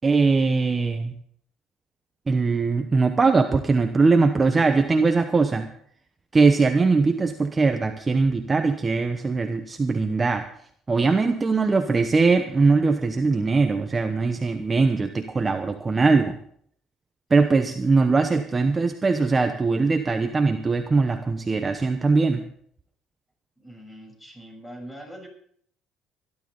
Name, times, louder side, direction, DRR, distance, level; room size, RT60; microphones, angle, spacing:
voice 1, 0.0-1.1 2.3-5.7 6.3-10.5 10.9-16.4 17.3-22.4, right 4 dB, 25° right, 7 dB, 1.0 m, -21 dB
voice 2, 23.6-25.3, equal, 10° left, 2 dB, 6.8 m, -42 dB
19.5 x 12.0 x 4.0 m, 0.63 s
supercardioid pair, 90°, 0 cm